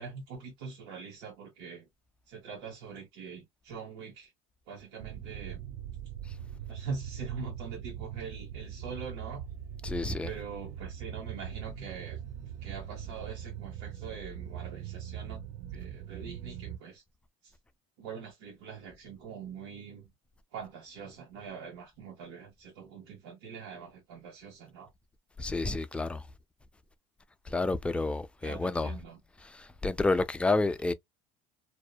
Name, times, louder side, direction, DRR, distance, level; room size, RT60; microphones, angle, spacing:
voice 1, 0.0-1.9 2.3-4.3 4.7-5.6 6.7-9.5 10.2-15.4 15.7-17.0 17.4-17.5 18.0-20.1 20.5-24.9 28.4-29.2, right 5 dB, 85° right, 0.9 m, -43 dB
sound 1, 5.0-16.8, right 9 dB, 70° right, 0.4 m, -41 dB
voice 2, 9.8-10.3 25.4-26.2 27.5-28.9 29.5-30.9, left 3 dB, 10° left, 0.3 m, -29 dB
2.7 x 2.1 x 2.2 m
supercardioid pair, 110°, 14 cm